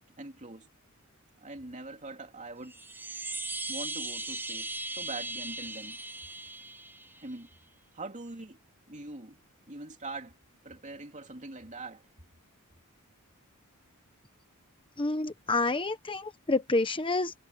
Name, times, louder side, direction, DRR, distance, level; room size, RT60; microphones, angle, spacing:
voice 1, 0.2-0.7 1.4-2.8 3.7-6.0 7.2-7.5 7.9-8.6 8.9-9.4 9.7-10.3 10.6-12.0, right 2 dB, 35° right, 2.9 m, -43 dB
Chime, 2.6-7.3, right 2 dB, 10° right, 0.9 m, -38 dB
voice 2, 15.0-17.3, left 3 dB, 25° left, 1.1 m, -28 dB
head